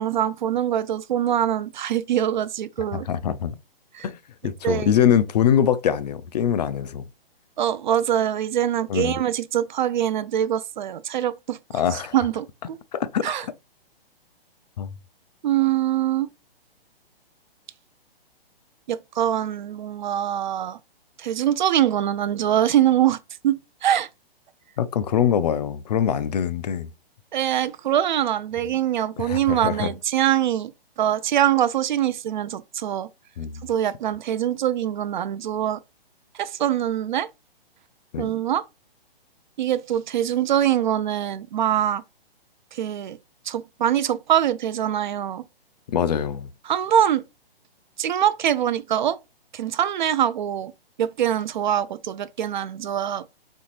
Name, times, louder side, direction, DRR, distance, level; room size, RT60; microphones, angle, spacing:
voice 1, 0.0-3.1 4.0-4.1 4.4-4.9 7.6-11.6 11.9-12.8 13.2-13.4 15.4-16.3 18.9-20.8 21.2-23.2 23.4-24.1 27.3-30.7 31.0-33.1 33.6-35.8 36.4-37.3 38.2-38.6 39.6-42.0 42.7-43.2 43.5-45.4 46.7-47.2 48.0-49.2 49.5-50.7 51.0-53.3, right 11 dB, 50° right, 0.5 m, -23 dB
voice 2, 2.9-3.6 4.0-4.2 4.4-7.0 8.9-9.2 11.7-12.1 12.9-13.5 14.8-14.9 24.8-26.9 29.2-29.9 33.4-33.6 38.1-38.3 45.9-46.5, left 9 dB, 45° left, 0.4 m, -23 dB
4.2 x 3.4 x 3.1 m
hypercardioid pair, 145°, 30 cm